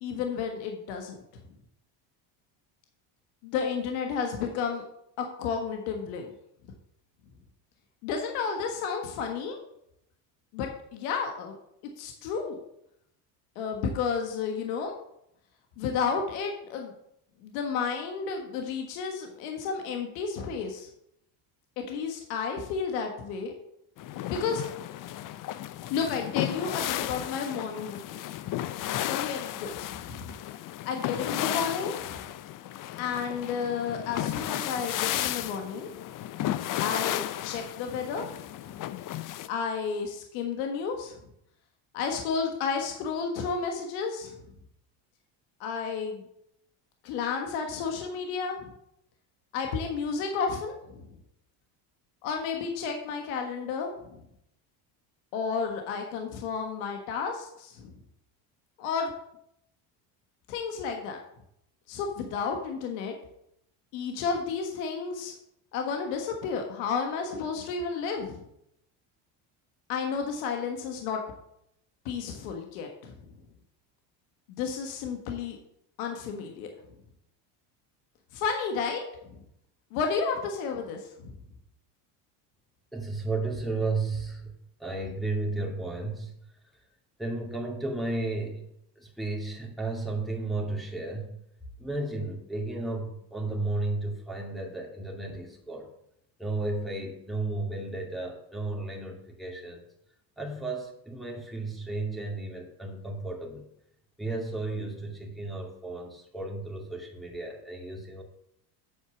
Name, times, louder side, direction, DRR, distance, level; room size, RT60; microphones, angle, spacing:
voice 1, 0.0-1.2 3.4-4.8 5.2-6.3 8.0-9.6 10.5-11.5 12.0-12.6 13.5-14.9 15.8-16.9 17.4-20.9 21.8-23.5 24.3-24.6 25.9-28.2 29.0-30.3 30.8-32.3 33.0-35.9 36.8-38.2 39.5-41.2 41.9-44.3 45.6-46.2 47.0-48.7 49.5-51.1 52.2-54.2 55.3-57.9 58.8-59.1 60.5-61.2 61.9-63.1 63.9-65.3 65.7-68.4 69.9-71.2 72.0-73.1 74.5-75.6 76.0-76.7 78.3-79.0 79.3-79.4 79.9-81.3, left 5 dB, 85° left, 3 dB, 1.5 m, -32 dB
sound 1, 24.0-39.5, left 13 dB, 45° left, 0.6 m, -34 dB
voice 2, 82.9-84.5 84.8-86.3 87.2-88.6 89.0-91.4 91.8-95.9 96.4-99.8 100.4-103.6 104.2-108.2, right 2 dB, ahead, -2 dB, 2.4 m, -33 dB
8.4 x 4.6 x 7.0 m, 0.75 s
supercardioid pair, 105°, 46 cm